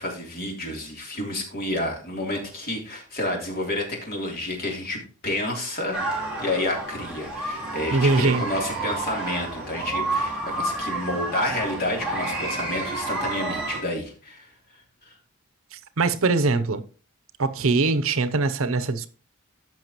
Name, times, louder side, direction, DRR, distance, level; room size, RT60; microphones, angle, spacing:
voice 1, 0.0-6.0 6.4-14.5 15.0-15.1, left 1 dB, 45° left, 3.2 m, -30 dB
sound 1, 5.9-13.8, right 2 dB, 5° right, 3.8 m, -30 dB
voice 2, 7.9-8.4 15.7-16.8 17.4-19.1, right 3 dB, 75° right, 0.7 m, -22 dB
14.5 x 5.9 x 3.0 m
head